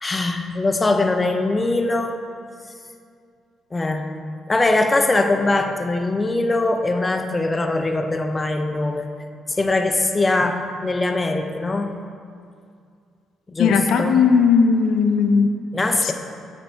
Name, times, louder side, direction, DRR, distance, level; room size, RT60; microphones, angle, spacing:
voice 1, 0.0-2.2 3.7-4.1 4.5-9.1 9.5-11.9 13.5-14.1 15.7-16.1, left 2 dB, 25° left, 5 dB, 0.4 m, -21 dB
voice 2, 13.6-15.5 16.0-16.1, left 5 dB, 80° left, 6 dB, 0.4 m, -17 dB
7.8 x 3.5 x 4.3 m, 2.3 s
cardioid pair, 90°, 0 cm